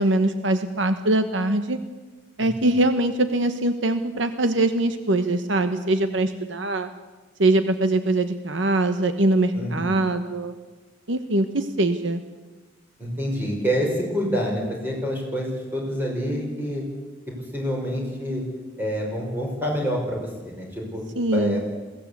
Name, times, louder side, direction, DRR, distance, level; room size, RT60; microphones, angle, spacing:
voice 1, 0.0-1.8 2.4-6.9 7.4-10.5 11.1-12.2 21.2-21.6, right 2 dB, 65° right, 9 dB, 1.1 m, -22 dB
voice 2, 9.5-10.0 13.0-16.8 17.5-18.4 18.8-21.0 21.3-21.6, equal, 10° right, -1 dB, 5.5 m, -27 dB
21.5 x 16.5 x 8.4 m, 1.3 s
head